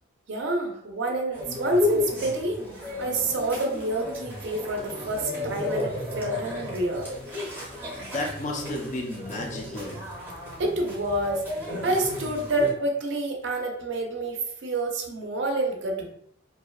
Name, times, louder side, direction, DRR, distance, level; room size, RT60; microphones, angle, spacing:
voice 1, 0.3-2.6 3.0-7.1 10.6-11.4 11.8-16.1, right 2 dB, 60° right, 1 dB, 0.4 m, -28 dB
sound 1, 1.3-12.7, left 2 dB, 10° right, 0.6 m, -33 dB
voice 2, 8.0-10.0, left 1 dB, 35° left, 1 dB, 0.3 m, -33 dB
2.6 x 2.1 x 2.3 m, 0.68 s
head